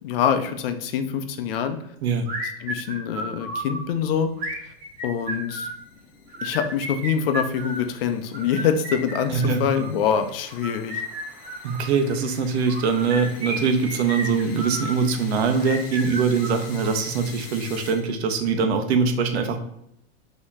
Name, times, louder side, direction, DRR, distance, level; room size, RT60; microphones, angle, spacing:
voice 1, 0.0-1.8 2.6-4.3 4.6-4.7 5.0-5.7 6.4-11.0, left 7 dB, 65° left, 8 dB, 0.7 m, -25 dB
sound 1, 2.3-3.8 4.4-5.8 6.3-7.8 8.3-9.9 10.5-11.9 12.6-15.0 15.5-17.0, right 1 dB, 50° right, 1.5 m, -33 dB
sound 2, 3.8-18.4, left 4 dB, 25° left, 0.9 m, -46 dB
voice 2, 11.6-19.6, right 5 dB, 85° right, 7 dB, 0.8 m, -23 dB
4.3 x 3.0 x 3.6 m, 0.76 s
supercardioid pair, 155°, 31 cm